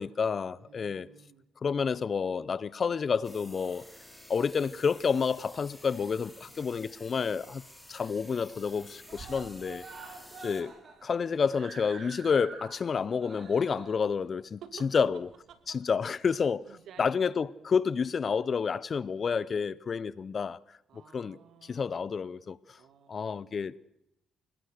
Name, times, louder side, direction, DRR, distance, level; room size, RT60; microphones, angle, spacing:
voice 1, 0.0-1.1 1.6-3.8 4.3-7.6 7.9-9.9 10.4-10.7 11.0-14.6 14.9-15.3 15.7-16.7 17.0-20.6 21.1-22.6 23.1-23.8, left 6 dB, 45° left, 0.7 m, -29 dB
voice 2, 0.6-1.4 14.6-14.9 15.5-15.8 16.7-17.8 20.9-21.8 22.8-23.7, right 8 dB, 70° right, 2.5 m, -53 dB
sound 1, 3.2-10.6, left 1 dB, 5° left, 4.8 m, -52 dB
Screaming, 6.3-7.1 7.4-7.5 7.8-7.9 8.2-8.7 9.0-15.9 16.7-16.8, right 4 dB, 45° right, 4.6 m, -48 dB
26.5 x 19.5 x 6.6 m
cardioid pair, 90°, 0 cm